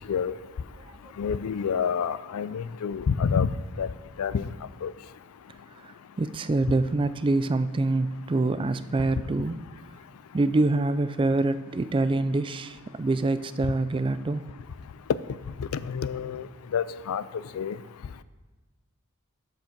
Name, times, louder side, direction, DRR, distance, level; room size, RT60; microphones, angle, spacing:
voice 1, 1.2-3.5 3.8-3.9 4.2-4.5 4.8-4.9 15.6-16.5 16.7-17.8, left 6 dB, 80° left, 16 dB, 0.4 m, -28 dB
voice 2, 6.2-9.6 10.3-14.4, right 2 dB, 25° right, 13 dB, 0.3 m, -25 dB
13.5 x 5.3 x 5.2 m, 1.2 s
head